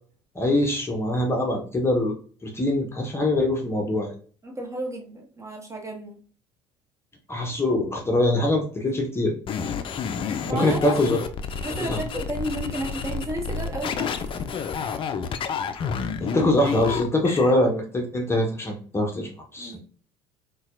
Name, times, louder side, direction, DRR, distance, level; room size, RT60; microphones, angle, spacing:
voice 1, 0.4-2.1 2.4-4.1 7.3-9.3 10.5-11.2 11.8-12.0 16.2-19.8, left 1 dB, 20° left, 1 dB, 0.8 m, -23 dB
voice 2, 4.4-6.2 10.4-10.8 11.6-14.2 19.6-19.8, right 1 dB, 20° right, 0 dB, 1.2 m, -32 dB
sound 1, 9.5-17.5, left 6 dB, 40° left, 0.4 m, -30 dB
4.0 x 2.2 x 2.4 m, 0.42 s
hypercardioid pair, 65°, 13 cm